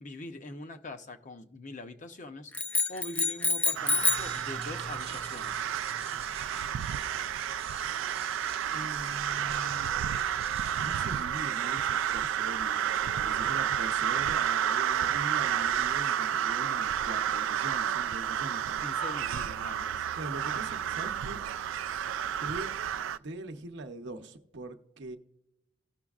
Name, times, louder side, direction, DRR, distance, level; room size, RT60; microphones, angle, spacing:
voice 1, 0.0-2.5 2.9-5.7 18.8-20.1, left 2 dB, 40° left, 0.7 m, -43 dB
sound 1, 2.5-4.4, left 3 dB, 10° left, 0.3 m, -27 dB
sound 2, 3.7-11.2, right 5 dB, 35° right, 0.7 m, -46 dB
sound 3, 3.7-23.2, right 9 dB, 85° right, 0.3 m, -31 dB
voice 2, 8.7-9.9 10.8-18.9 20.1-21.4 22.4-22.7 23.2-25.2, right 2 dB, 65° right, 0.7 m, -42 dB
16.5 x 6.2 x 2.4 m
head